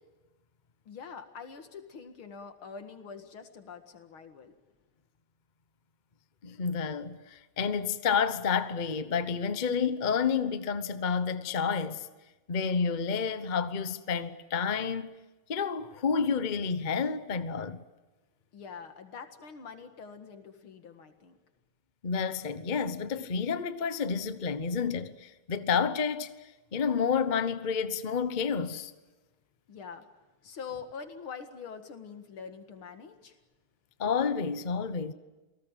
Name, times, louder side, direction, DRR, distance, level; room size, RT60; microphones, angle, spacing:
voice 1, 0.9-4.6 18.5-21.4 29.7-30.1 30.4-33.4, left 6 dB, 80° left, 2.7 m, -44 dB
voice 2, 6.4-12.1 12.5-15.1 15.5-17.8 22.0-26.3 26.7-28.9 34.0-35.1, left 6 dB, 35° left, 0.7 m, -30 dB
28.0 x 18.5 x 9.1 m
omnidirectional pair, 2.3 m